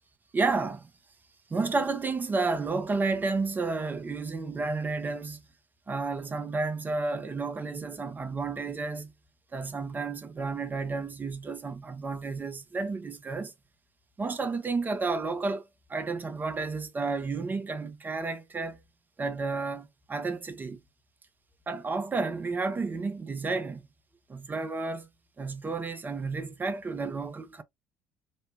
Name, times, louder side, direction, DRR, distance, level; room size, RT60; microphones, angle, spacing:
voice 1, 0.3-0.9 1.5-5.4 5.9-9.1 9.5-13.5 14.2-15.6 15.9-18.8 19.2-20.8 21.7-23.8 24.3-25.1 25.4-27.6, right 3 dB, 25° right, 0.6 m, -31 dB
3.1 x 2.1 x 2.7 m
figure-of-eight pair, 55°, 8 cm